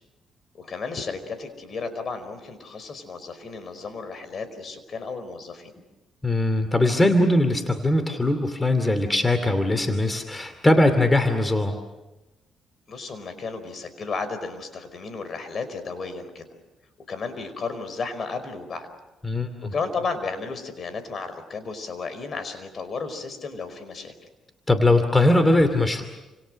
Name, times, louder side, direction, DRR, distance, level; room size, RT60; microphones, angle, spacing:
voice 1, 0.5-5.7 12.9-16.5 17.1-18.9 19.6-24.1, left 4 dB, 50° left, 11 dB, 5.0 m, -33 dB
voice 2, 6.2-11.8 19.2-19.7 24.7-26.0, left 1 dB, 15° left, 9 dB, 2.6 m, -20 dB
29.5 x 27.0 x 6.5 m, 1.0 s
cardioid pair, 90°, 0 cm